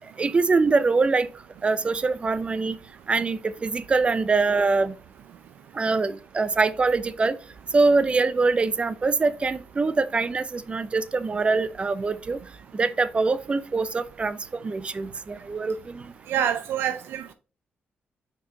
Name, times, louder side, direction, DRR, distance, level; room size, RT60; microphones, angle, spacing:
voice 1, 0.2-1.3 1.6-2.8 3.1-4.9 5.7-7.4 7.7-12.4 12.7-14.4 14.6-16.1, right 3 dB, 30° right, 0.5 m, -23 dB
voice 2, 16.3-17.3, right 9 dB, 90° right, 0.4 m, -26 dB
5.7 x 4.7 x 3.6 m
cardioid pair, 90°, 4 cm